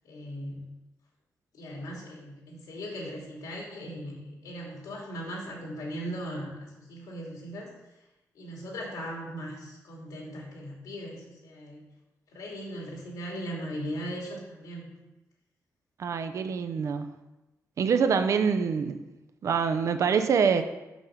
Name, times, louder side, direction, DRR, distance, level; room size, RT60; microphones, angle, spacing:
voice 1, 0.0-0.7 1.5-7.7 8.3-11.8 12.3-14.9, equal, 90° left, -2 dB, 2.5 m, -38 dB
voice 2, 16.0-17.1 17.8-19.1 19.4-20.6, right 6 dB, 55° right, 9 dB, 0.6 m, -25 dB
6.6 x 6.1 x 5.7 m, 1.0 s
wide cardioid pair, 160°, 6 cm